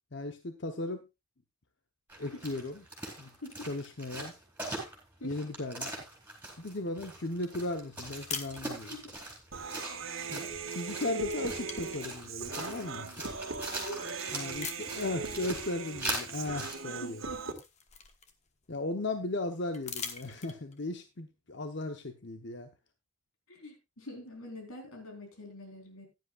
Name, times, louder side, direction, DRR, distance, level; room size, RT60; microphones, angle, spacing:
voice 1, 0.1-1.0 2.2-2.8 3.2-3.3 3.7-4.3 5.2-5.9 6.6-8.9 10.3-10.5 10.7-13.3 14.3-17.2 18.7-22.7, left 2 dB, 55° left, 6 dB, 1.0 m, -36 dB
sound 1, 2.1-16.8, right 2 dB, 10° right, 4.4 m, -42 dB
sound 2, 8.3-9.3 10.7-10.9 11.2-12.8 13.5-13.6 14.6-15.2 16.6-16.7 17.1-18.7 19.7-20.8, left 6 dB, 35° left, 1.2 m, -43 dB
Human voice, 9.5-17.5, right 5 dB, 75° right, 1.7 m, -39 dB
voice 2, 16.9-17.5 23.5-26.1, left 1 dB, 90° left, 3 dB, 4.2 m, -45 dB
15.5 x 10.5 x 2.4 m, 0.24 s
head